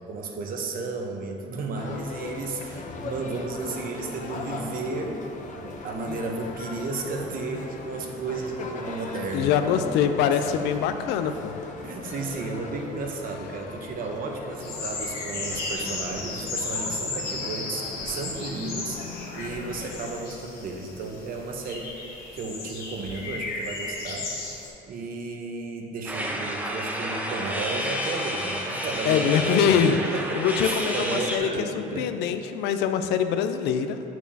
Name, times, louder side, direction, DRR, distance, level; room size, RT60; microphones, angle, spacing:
voice 1, 0.1-10.6 11.2-11.3 11.8-19.0 19.3-21.9 22.3-29.8 30.1-32.1, right 3 dB, 55° right, 2 dB, 0.8 m, -33 dB
sound 1, 1.7-20.2, left 4 dB, 45° left, 0.7 m, -39 dB
voice 2, 9.3-11.5 29.1-30.0 30.4-31.5 31.7-34.0, left 8 dB, 90° left, 8 dB, 0.4 m, -24 dB
sound 2, 14.6-24.7, left 3 dB, 65° left, 1.6 m, -35 dB
sound 3, 26.1-31.4, equal, 10° right, 0.7 m, -30 dB
8.3 x 6.1 x 2.7 m, 2.8 s
cardioid pair, 110°, 17 cm